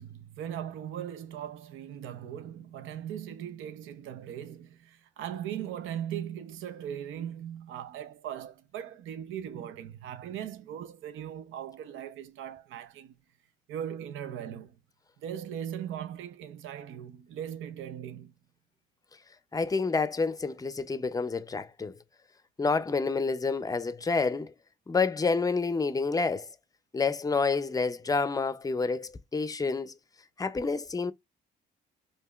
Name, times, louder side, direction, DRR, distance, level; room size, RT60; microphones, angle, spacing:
voice 1, 0.0-13.2 13.7-14.8 15.2-18.3, right 10 dB, 85° right, 0.6 m, -39 dB
voice 2, 19.5-21.9 22.6-24.5 24.9-26.5 26.9-29.9 30.4-31.1, left 4 dB, 20° left, 0.5 m, -28 dB
4.7 x 2.6 x 2.3 m
cardioid pair, 90°, 20 cm